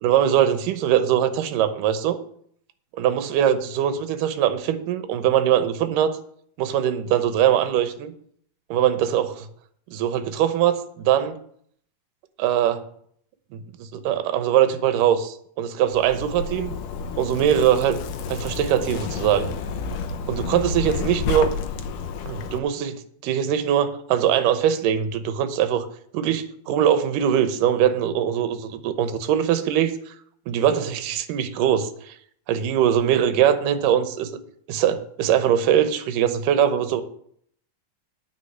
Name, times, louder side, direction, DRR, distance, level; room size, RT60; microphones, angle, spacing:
voice 1, 0.0-2.2 2.9-6.2 6.6-8.1 8.7-9.5 9.9-11.4 12.4-12.8 13.5-16.7 17.2-18.0 18.3-19.5 20.3-21.5 22.3-23.0 23.2-25.9 26.1-29.9 30.5-32.1 32.5-34.4 34.7-37.0, right 10 dB, 70° right, 10 dB, 2.4 m, -22 dB
Zipper (clothing), 15.9-22.6, left 4 dB, 70° left, 2.2 m, -30 dB
9.6 x 6.1 x 8.1 m, 0.63 s
omnidirectional pair, 4.2 m